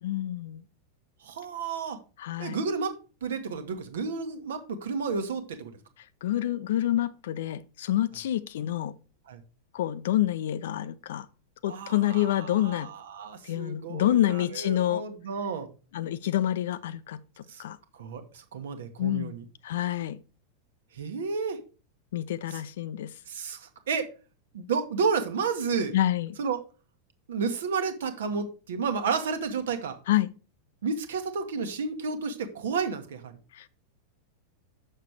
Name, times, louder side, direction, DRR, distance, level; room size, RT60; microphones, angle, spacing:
voice 1, 0.0-0.6 2.2-2.6 6.2-8.9 9.7-11.3 11.6-12.9 13.4-15.0 15.9-17.8 19.0-19.3 19.6-20.2 22.1-23.1 25.9-26.4 30.1-30.3 33.5-33.7, left 13 dB, 55° left, 0.5 m, -28 dB
voice 2, 1.2-2.0 2.4-2.9 3.2-5.7 9.3-9.4 11.7-15.7 17.5-17.6 17.9-19.4 20.9-21.6 22.5-22.6 23.3-24.1 24.5-25.9 26.4-26.6 27.3-30.0 30.8-33.4, right 5 dB, 60° right, 1.2 m, -31 dB
6.6 x 6.6 x 4.7 m
figure-of-eight pair, 90°, 0 cm